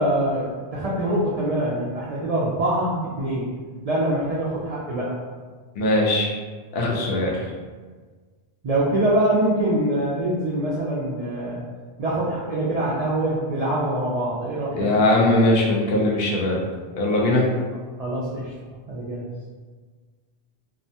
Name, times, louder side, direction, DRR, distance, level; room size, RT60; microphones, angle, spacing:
voice 1, 0.0-3.5 3.8-5.1 8.6-11.6 12.0-14.9 18.0-18.5 18.9-19.3, right 1 dB, 75° right, -6 dB, 0.3 m, -24 dB
voice 2, 5.8-6.3 6.7-7.4 14.7-16.6 17.0-17.5, left 1 dB, 65° left, -3 dB, 0.8 m, -20 dB
2.7 x 2.1 x 2.7 m, 1.5 s
omnidirectional pair, 1.2 m